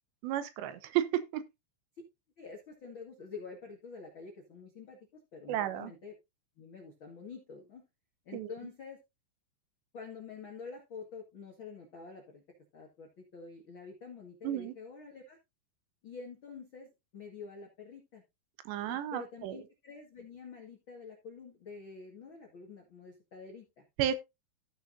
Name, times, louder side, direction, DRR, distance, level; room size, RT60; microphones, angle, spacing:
voice 1, 0.2-1.1 1.3-1.4 5.5-5.9 8.3-8.5 14.4-14.7 18.7-19.6 24.0-24.1, right 11 dB, 80° right, 2.9 m, -32 dB
voice 2, 2.4-6.1 6.6-7.8 8.2-9.0 9.9-12.4 12.7-15.4 16.0-18.2 18.9-23.8, left 5 dB, 80° left, 1.1 m, -47 dB
15.0 x 6.2 x 2.6 m
omnidirectional pair, 5.4 m